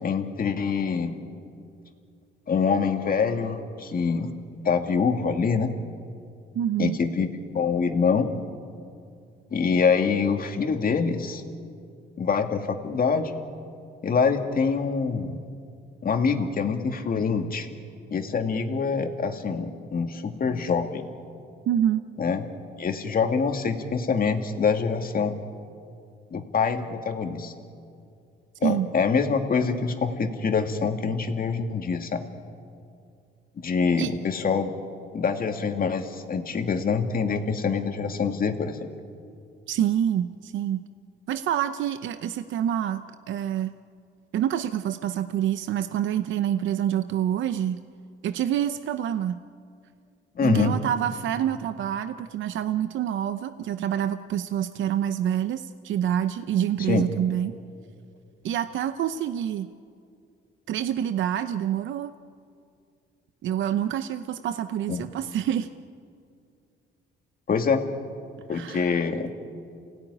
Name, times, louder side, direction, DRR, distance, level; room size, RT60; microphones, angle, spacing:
voice 1, 0.0-1.2 2.5-4.3 4.6-5.7 6.8-8.3 9.5-11.4 12.2-13.3 14.0-15.4 16.0-17.7 18.1-21.1 22.2-22.4 22.8-25.3 26.3-27.5 28.6-32.2 33.6-34.7 35.1-38.9 50.4-50.8 56.9-57.0 64.9-65.0 67.5-67.8 68.5-69.3, left 5 dB, 45° left, 5 dB, 2.4 m, -25 dB
voice 2, 6.5-7.0 21.7-22.0 28.6-28.9 34.0-34.1 39.7-40.8 41.3-43.7 44.3-47.8 48.2-49.4 50.4-57.5 58.4-59.7 60.7-62.1 63.4-65.7 68.5-69.0, right 10 dB, 75° right, 11 dB, 0.8 m, -27 dB
28.5 x 17.5 x 9.9 m, 2.4 s
cardioid pair, 90°, 20 cm